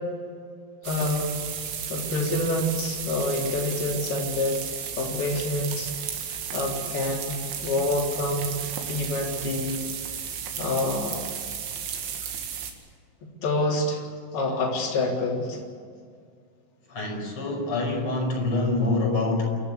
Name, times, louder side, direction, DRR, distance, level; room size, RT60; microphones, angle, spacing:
voice 1, 0.8-1.4 1.9-4.6 5.0-5.9 6.3-7.3 7.6-8.6 8.9-9.8 10.6-11.2 13.4-14.0 14.3-15.6, left 2 dB, 55° left, -3 dB, 5.5 m, -27 dB
sound 1, 0.8-12.7, right 7 dB, 80° right, 4.6 m, -34 dB
voice 2, 16.9-19.5, left 2 dB, 30° left, 0 dB, 5.8 m, -26 dB
28.0 x 14.0 x 8.5 m, 2.1 s
omnidirectional pair, 5.5 m